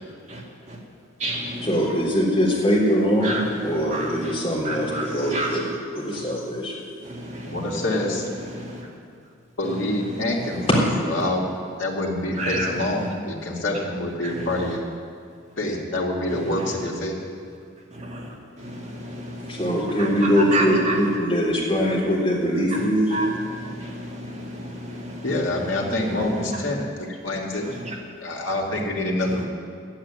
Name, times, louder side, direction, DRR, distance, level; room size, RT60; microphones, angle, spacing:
voice 1, 0.3-0.8 1.2-1.9 3.2-4.4 4.6-5.8 6.1-6.2 7.0-8.0 8.3-8.9 9.7-10.7 12.4-13.1 14.2-14.8 16.3-16.9 17.9-21.2 21.8-22.0 22.7-26.6 27.6-28.0 29.2-29.4, right 1 dB, 35° right, -2 dB, 2.0 m, -32 dB
voice 2, 1.6-5.4 5.9-6.8 19.5-23.1, equal, 25° left, -5 dB, 3.6 m, -22 dB
voice 3, 7.5-8.3 9.6-10.8 11.1-11.5 11.8-14.9 15.6-17.2 25.2-27.7 28.2-29.5, left 1 dB, 70° left, -2 dB, 2.5 m, -26 dB
11.5 x 8.9 x 9.6 m, 2.2 s
head